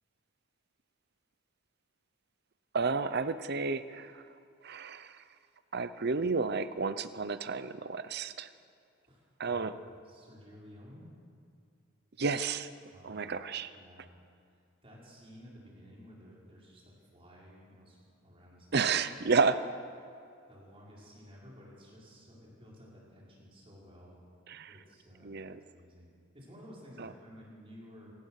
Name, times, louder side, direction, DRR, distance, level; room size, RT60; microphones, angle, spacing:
voice 1, 2.7-4.2 4.6-5.2 5.7-8.5 9.4-9.7 12.2-12.7 13.0-13.7 18.7-19.6 24.5-24.7 25.2-25.6 27.0-27.1, right 4 dB, 55° right, 12 dB, 0.8 m, -31 dB
voice 2, 9.1-11.1 12.9-13.2 13.7-14.1 14.5-18.9 19.2-19.3 20.5-24.2 24.7-26.1 26.3-28.1, equal, 30° right, -5 dB, 5.8 m, -54 dB
26.5 x 17.0 x 6.6 m, 2.5 s
head